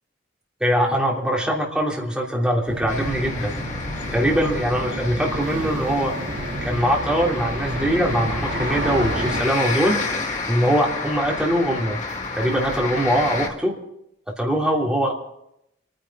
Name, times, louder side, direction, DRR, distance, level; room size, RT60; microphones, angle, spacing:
voice 1, 0.6-3.5 4.1-6.2 6.6-10.0 10.5-12.0 12.4-13.7 14.3-15.1, equal, 5° right, -3 dB, 3.2 m, -22 dB
sound 1, 2.7-9.4, right 1 dB, 50° right, 2.6 m, -30 dB
sound 2, 2.9-13.5, left 3 dB, 40° left, 2.1 m, -30 dB
28.5 x 10.5 x 4.8 m, 0.81 s
head